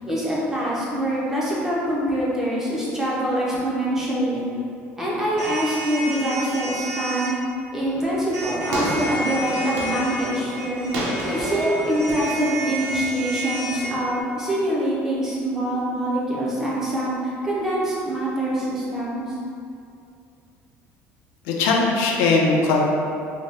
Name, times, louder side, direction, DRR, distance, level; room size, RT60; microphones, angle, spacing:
voice 1, 0.0-4.4 5.0-7.4 7.7-10.9 11.2-19.4, right 1 dB, 10° right, -7 dB, 0.5 m, -25 dB
sound 1, 5.4-7.3 8.3-13.9, right 1 dB, 60° right, 0.9 m, -31 dB
sound 2, 7.8-14.0, right 1 dB, 80° right, 0.5 m, -31 dB
voice 2, 21.4-22.9, left 3 dB, 90° left, -1 dB, 0.4 m, -19 dB
2.6 x 2.2 x 3.2 m, 2.5 s
cardioid pair, 170°, 5 cm